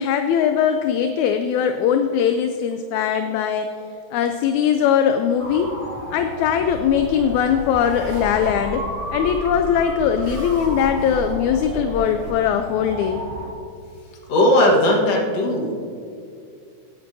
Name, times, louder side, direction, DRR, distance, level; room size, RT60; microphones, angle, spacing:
voice 1, 0.0-3.7 4.1-5.7 6.1-8.8 9.1-13.2, left 8 dB, 80° left, 7 dB, 1.8 m, -20 dB
sound 1, 5.4-13.5, equal, 75° right, 4.0 m, -33 dB
sound 2, 6.7-12.3, equal, 55° right, 0.7 m, -35 dB
voice 2, 14.3-15.7, left 1 dB, 60° left, 0 dB, 2.4 m, -17 dB
17.5 x 8.9 x 2.7 m, 2.4 s
omnidirectional pair, 3.5 m